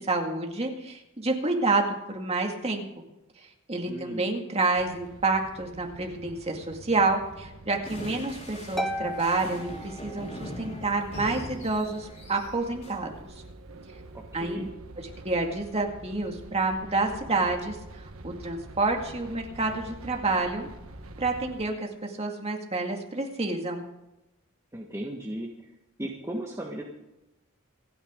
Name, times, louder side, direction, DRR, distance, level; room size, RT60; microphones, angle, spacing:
voice 1, 0.0-3.1 3.7-13.3 14.3-14.7 15.0-17.8 18.2-20.7 21.2-23.8, right 3 dB, 30° right, 2 dB, 2.1 m, -28 dB
voice 2, 3.9-4.2 14.1-14.7 24.7-25.5 26.0-26.8, right 1 dB, 15° right, -1 dB, 1.4 m, -36 dB
sound 1, 4.8-21.7, right 2 dB, 85° right, 1.3 m, -46 dB
sound 2, 7.8-13.0, equal, 30° left, 4.3 m, -41 dB
Harp, 8.8-10.6, equal, ahead, 0.8 m, -35 dB
28.0 x 9.5 x 3.8 m, 0.95 s
head